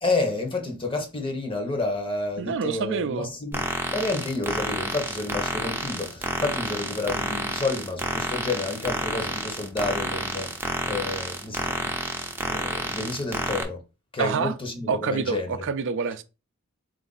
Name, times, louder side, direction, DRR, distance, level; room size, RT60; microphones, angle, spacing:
voice 1, 0.0-3.6 3.9-12.0 12.4-13.8 14.1-15.7, left 3 dB, 25° left, 0.9 m, -30 dB
voice 2, 2.4-3.3 14.2-14.5 14.9-16.2, right 5 dB, 60° right, 0.4 m, -27 dB
sound 1, 3.5-13.6, right 1 dB, 10° right, 0.6 m, -30 dB
4.0 x 2.6 x 3.9 m
head